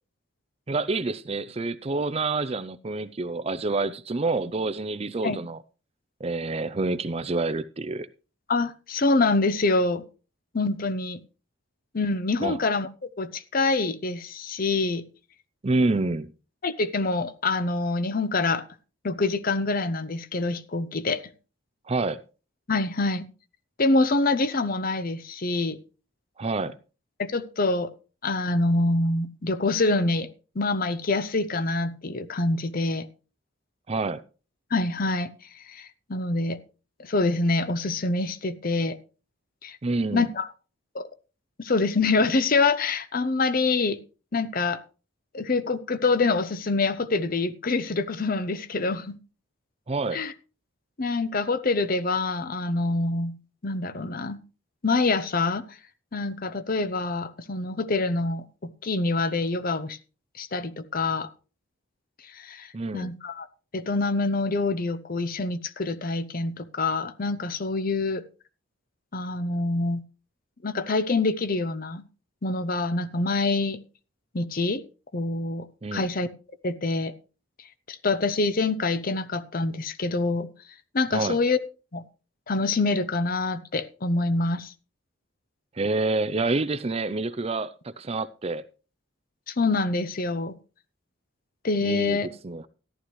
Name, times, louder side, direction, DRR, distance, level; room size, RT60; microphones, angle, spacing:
voice 1, 0.7-5.6 6.2-8.1 12.4-12.6 15.6-16.3 21.9-22.2 26.4-26.8 33.9-34.2 39.8-40.3 49.9-50.2 62.7-63.1 75.8-76.1 81.1-81.4 85.8-88.6 91.8-92.2 92.4-92.7, right 3 dB, 30° right, 0.4 m, -27 dB
voice 2, 8.5-10.0 10.5-11.2 11.9-15.0 16.6-18.6 19.0-21.2 22.7-23.3 23.8-25.8 27.2-27.9 28.2-30.3 30.6-33.1 34.7-35.3 35.7-36.6 37.0-39.0 39.6-39.8 40.1-40.5 40.9-41.1 41.6-44.0 44.3-44.8 45.3-49.2 50.1-50.3 51.0-53.4 53.6-54.4 54.8-55.6 56.1-60.0 60.4-61.3 62.3-62.7 62.9-63.5 63.7-68.2 69.1-70.0 70.6-72.0 72.4-73.8 74.3-74.8 75.1-76.3 76.6-77.1 77.9-80.5 80.9-81.6 81.9-82.0 82.5-84.7 89.5-90.6 91.6-92.3, left 3 dB, 45° left, 0.7 m, -26 dB
14.0 x 11.5 x 3.1 m
head